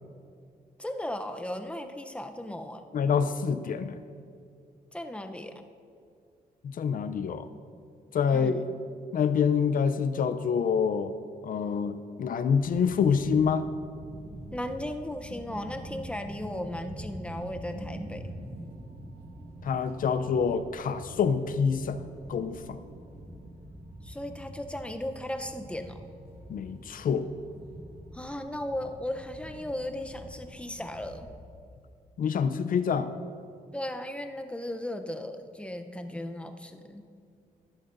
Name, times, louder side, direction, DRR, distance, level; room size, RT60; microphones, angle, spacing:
voice 1, 0.8-2.9 4.9-5.6 8.3-8.7 14.5-18.3 24.0-26.0 28.1-31.3 33.7-37.0, left 1 dB, 5° left, 6 dB, 0.7 m, -36 dB
voice 2, 2.9-4.0 6.6-7.5 8.1-8.5 9.1-11.1 11.4-13.7 19.6-22.0 22.3-22.8 26.5-27.3 32.2-33.1, left 6 dB, 60° left, 11 dB, 0.5 m, -26 dB
sound 1, 12.5-31.3, right 1 dB, 85° right, 2.1 m, -45 dB
14.0 x 10.5 x 2.6 m, 2.3 s
cardioid pair, 85°, 16 cm